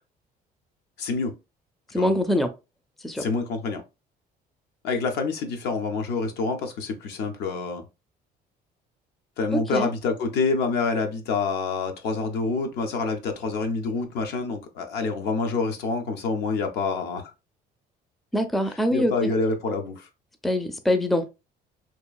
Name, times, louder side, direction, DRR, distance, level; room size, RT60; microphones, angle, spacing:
voice 1, 1.0-1.3 2.0-2.1 3.2-3.8 4.8-7.8 9.4-17.3 18.9-20.1, left 4 dB, 80° left, 0.6 m, -27 dB
voice 2, 1.9-2.5 3.0-3.2 9.5-9.9 18.3-19.3 20.4-21.2, left 1 dB, ahead, 0.4 m, -24 dB
2.9 x 2.4 x 2.3 m
cardioid pair, 110°, 17 cm